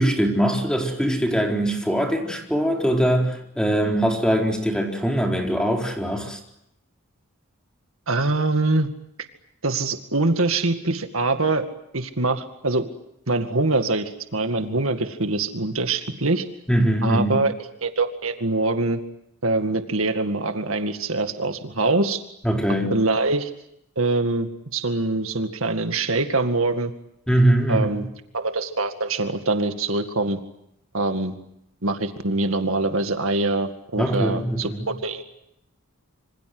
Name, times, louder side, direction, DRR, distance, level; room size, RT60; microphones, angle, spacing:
voice 1, 0.0-6.4 16.7-17.4 22.4-22.9 27.3-27.9 34.0-34.9, right 1 dB, 5° left, 2 dB, 4.2 m, -22 dB
voice 2, 8.1-8.9 9.6-11.6 11.9-12.9 13.3-16.4 17.0-17.5 17.8-19.0 19.4-22.2 22.9-23.5 24.0-26.9 27.7-28.0 28.3-30.4 30.9-31.3 31.8-35.2, right 2 dB, 70° right, 7 dB, 2.1 m, -24 dB
27.0 x 26.0 x 7.9 m, 0.77 s
head